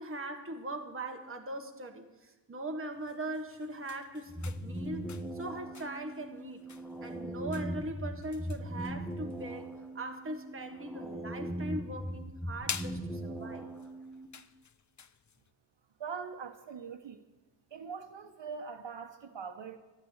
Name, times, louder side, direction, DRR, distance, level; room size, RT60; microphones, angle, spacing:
voice 1, 0.0-2.1 2.5-5.1 5.3-6.6 7.0-13.7, right 1 dB, 30° right, 4 dB, 1.4 m, -40 dB
sound 1, 2.9-15.5, left 7 dB, 40° left, 0.6 m, -49 dB
sound 2, 4.3-14.3, right 1 dB, ahead, 1.8 m, -40 dB
voice 2, 16.0-17.2 17.7-19.8, right 6 dB, 75° right, 6 dB, 1.1 m, -42 dB
12.0 x 11.0 x 8.0 m, 1.1 s
wide cardioid pair, 115°, 44 cm